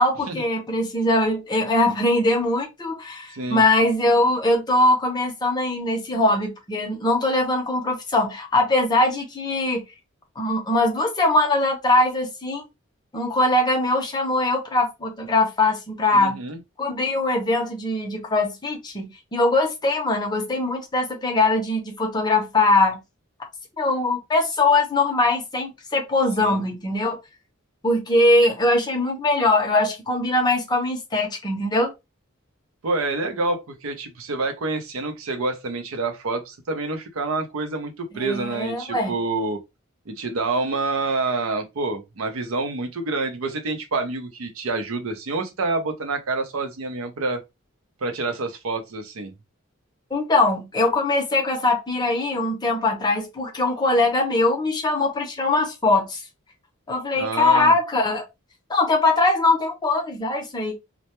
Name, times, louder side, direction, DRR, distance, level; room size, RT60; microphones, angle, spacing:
voice 1, 0.0-9.8 10.4-12.6 13.1-16.4 16.8-23.0 23.8-27.2 27.8-31.9 38.1-39.2 50.1-56.2 56.9-58.2 58.7-60.7, left 2 dB, 20° left, 0.5 m, -21 dB
voice 2, 16.1-16.6 26.4-26.6 32.8-39.6 40.1-47.4 48.0-49.3 57.1-57.7, right 3 dB, 80° right, 0.5 m, -27 dB
2.1 x 2.0 x 2.8 m
head